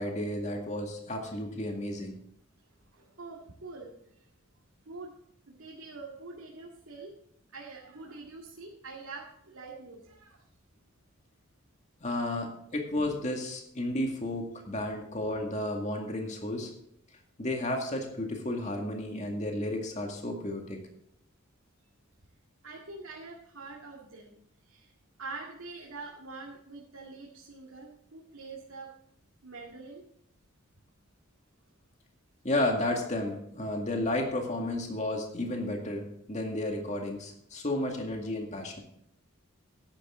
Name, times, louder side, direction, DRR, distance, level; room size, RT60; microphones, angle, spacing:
voice 1, 0.0-2.2 12.0-16.7 17.4-20.8 32.4-38.8, left 1 dB, 35° left, 2 dB, 2.1 m, -32 dB
voice 2, 2.9-4.2 4.8-5.2 5.5-7.1 7.5-10.4 22.6-24.4 24.6-24.9 25.2-28.9 29.4-30.0, right 3 dB, 85° right, -3 dB, 2.0 m, -45 dB
13.0 x 10.5 x 3.7 m, 0.72 s
head